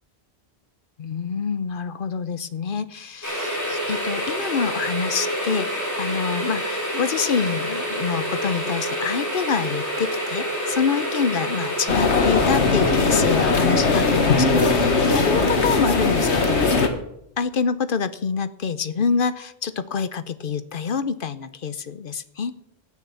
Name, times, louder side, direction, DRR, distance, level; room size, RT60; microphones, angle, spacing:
voice 1, 1.0-16.6 17.4-22.5, left 6 dB, 55° left, 14 dB, 0.9 m, -26 dB
sound 1, 3.2-16.9, equal, 15° left, 4.4 m, -28 dB
sound 2, 11.9-16.9, left 4 dB, 85° left, 1.6 m, -20 dB
13.0 x 9.6 x 7.0 m, 0.78 s
omnidirectional pair, 1.1 m